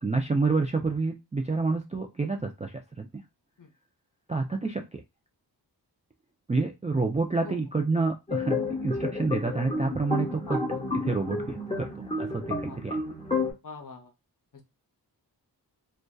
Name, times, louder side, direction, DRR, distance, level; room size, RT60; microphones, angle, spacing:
voice 1, 0.0-3.2 4.3-5.0 6.5-10.6 11.1-11.9 12.2-13.0, right 3 dB, 20° right, 2 dB, 0.3 m, -28 dB
sound 1, 8.3-13.5, left 3 dB, 15° left, 0.9 m, -31 dB
voice 2, 13.6-14.1 14.5-14.6, left 4 dB, 50° left, 4 dB, 0.7 m, -42 dB
2.6 x 2.2 x 2.2 m, 0.23 s
wide cardioid pair, 65°, 40 cm